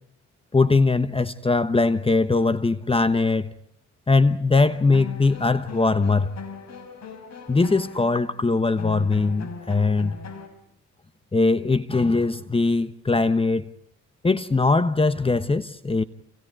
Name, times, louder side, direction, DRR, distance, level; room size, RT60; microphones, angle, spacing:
voice 1, 0.5-3.5 4.1-6.3 7.5-10.2 11.3-13.7 14.2-16.0, left 3 dB, 20° left, 1.1 m, -21 dB
sound 1, 4.5-10.5, left 5 dB, 60° left, 5.6 m, -39 dB
29.5 x 29.0 x 4.8 m
cardioid pair, 90°, 30 cm